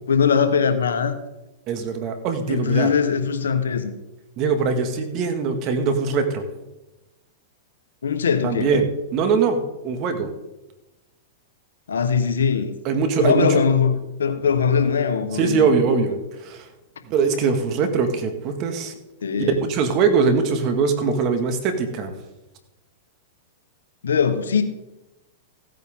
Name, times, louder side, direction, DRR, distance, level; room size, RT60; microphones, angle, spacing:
voice 1, 0.1-1.2 2.5-3.9 8.0-8.7 11.9-12.7 13.2-15.7 19.2-19.6 24.0-24.6, left 6 dB, 90° left, 1.3 m, -21 dB
voice 2, 1.7-2.9 4.4-6.4 8.4-10.3 12.8-13.6 15.3-16.7 17.0-19.0 19.4-22.1, right 5 dB, 40° right, 1.9 m, -22 dB
15.5 x 9.1 x 3.8 m
hypercardioid pair, 120°, 0 cm